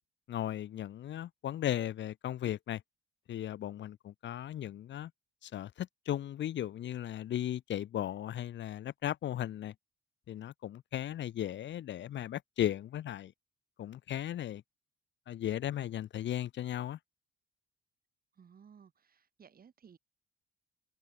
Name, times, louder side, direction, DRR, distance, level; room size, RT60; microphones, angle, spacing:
voice 1, 0.3-2.8 3.3-5.1 5.4-9.7 10.3-13.3 13.8-14.6 15.3-17.0, left 11 dB, 65° left, 1.3 m, -36 dB
voice 2, 18.3-20.0, right 7 dB, 50° right, 5.6 m, -58 dB
cardioid pair, 90°, 20 cm